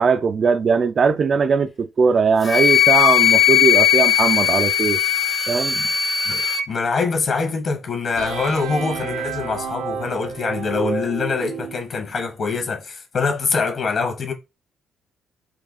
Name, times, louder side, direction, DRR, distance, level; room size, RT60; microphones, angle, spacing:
voice 1, 0.0-5.0 5.5-5.8, right 5 dB, 50° right, 0.4 m, -19 dB
Wind instrument woodwind instrument, 2.5-6.6, left 10 dB, 40° left, 0.7 m, -17 dB
voice 2, 6.2-14.3, left 4 dB, 55° left, 1.5 m, -24 dB
sound 1, 8.2-11.9, right 6 dB, 90° right, 0.9 m, -29 dB
4.5 x 2.3 x 4.1 m
supercardioid pair, 65°, 0 cm